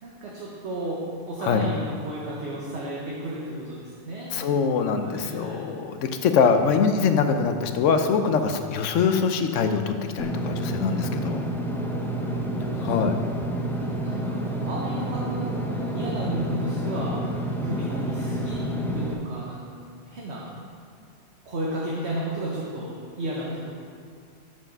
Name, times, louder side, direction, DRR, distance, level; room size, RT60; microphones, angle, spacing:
voice 1, 0.0-4.3 5.0-5.7 11.7-13.2 13.7-19.7 20.1-20.5 21.4-23.7, right 1 dB, 65° right, -5 dB, 1.3 m, -33 dB
voice 2, 4.3-11.4 12.8-13.2, left 6 dB, 85° left, 7 dB, 1.0 m, -23 dB
Engine / Mechanisms, 10.2-19.1, right 1 dB, 5° left, 0.4 m, -29 dB
7.1 x 5.6 x 6.1 m, 2.2 s
omnidirectional pair, 1.2 m